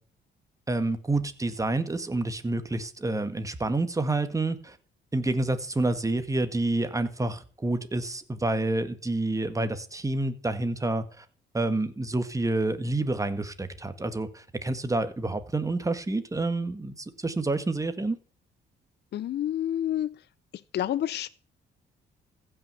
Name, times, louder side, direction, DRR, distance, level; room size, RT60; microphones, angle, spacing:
voice 1, 0.7-4.8 5.1-11.3 11.5-18.2, right 2 dB, 15° right, 1.7 m, -28 dB
voice 2, 19.1-20.1 20.7-21.3, left 11 dB, 60° left, 0.6 m, -28 dB
15.5 x 6.3 x 6.9 m
cardioid pair, 90°, 20 cm